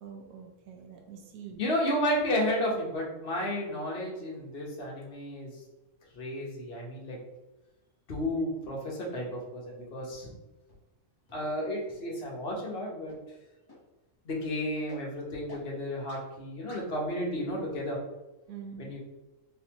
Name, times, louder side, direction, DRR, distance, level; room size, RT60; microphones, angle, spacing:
voice 1, 0.0-1.6 18.5-18.9, right 7 dB, 70° right, 3 dB, 1.2 m, -45 dB
voice 2, 1.6-5.5 6.1-7.2 8.1-10.3 11.3-13.2 14.2-18.0 18.8-19.0, equal, 45° left, -2 dB, 1.2 m, -32 dB
sound 1, 10.1-10.2 10.7-10.8 11.3-11.4 11.9-12.0 12.5-12.6 13.1-13.2 13.7-13.8 14.3-14.4 14.9-15.0 15.5-15.6 16.1-16.2 16.7-16.8, left 2 dB, 15° left, 0.9 m, -48 dB
4.0 x 3.4 x 2.9 m, 1.0 s
omnidirectional pair, 1.6 m